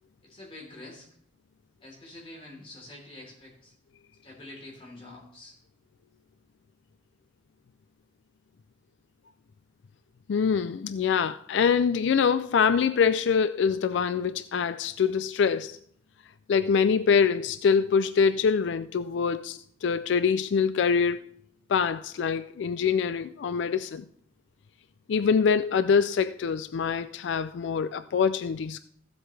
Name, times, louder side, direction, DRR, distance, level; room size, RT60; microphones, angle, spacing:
voice 1, 0.2-1.1 1.8-3.7 4.2-5.6, left 2 dB, 30° left, 3.5 m, -46 dB
voice 2, 10.3-15.8 16.5-21.4 21.7-24.0 25.1-28.8, left 6 dB, 80° left, 0.3 m, -24 dB
15.5 x 7.9 x 3.3 m
head